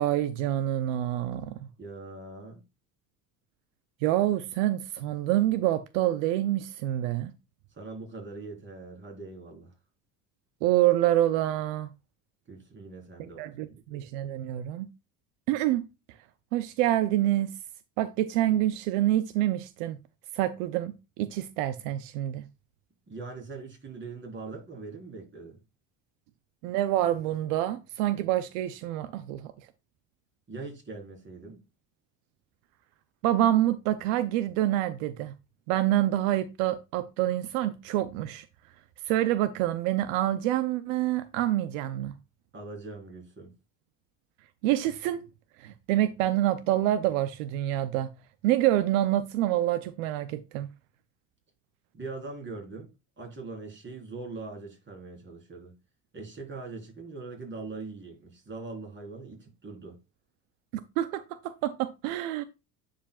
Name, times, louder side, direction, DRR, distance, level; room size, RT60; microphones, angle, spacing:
voice 1, 0.0-1.5 4.0-7.3 10.6-11.9 13.4-14.9 15.5-15.8 16.5-17.5 18.0-20.0 20.3-22.5 26.6-29.5 33.2-35.3 35.7-38.5 39.1-42.2 44.6-45.2 45.6-48.1 48.4-50.7 60.7-62.4, right 13 dB, 85° right, 0.7 m, -27 dB
voice 2, 1.8-2.6 7.7-9.7 12.5-13.8 23.1-25.6 30.5-31.6 42.5-43.5 51.9-52.9 53.2-55.7 56.1-60.0, right 3 dB, 30° right, 4.0 m, -41 dB
9.8 x 5.1 x 2.4 m
supercardioid pair, 100°, 39 cm